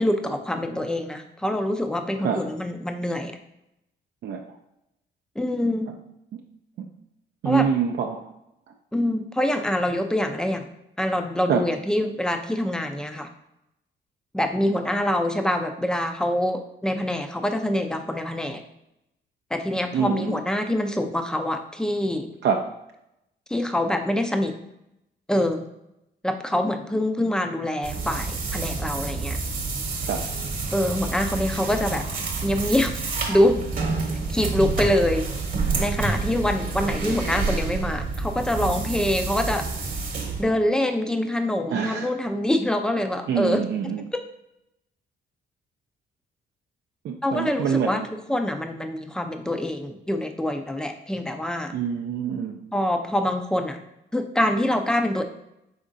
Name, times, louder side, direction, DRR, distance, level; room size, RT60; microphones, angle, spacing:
voice 1, 0.0-3.4 5.4-5.9 7.4-7.7 8.9-10.7 11.0-13.3 14.3-18.6 19.5-22.3 23.5-24.5 25.3-25.6 26.2-29.4 30.7-32.0 32.4-33.0 33.3-33.6 34.3-35.3 35.8-39.6 40.4-43.6 47.2-51.7 52.7-53.8 54.1-55.2, left 1 dB, 5° left, 6 dB, 0.5 m, -25 dB
voice 2, 4.2-4.6 6.3-6.4 6.8-6.9 7.4-8.3 11.5-11.6 19.9-20.4 22.4-22.6 30.0-30.3 41.7-42.1 43.3-44.0 47.0-48.1 51.7-52.6, right 7 dB, 60° right, 2 dB, 0.5 m, -25 dB
sound 1, 27.8-40.4, right 4 dB, 45° right, 1.0 m, -28 dB
5.1 x 3.5 x 2.6 m, 0.84 s
cardioid pair, 90°, 20 cm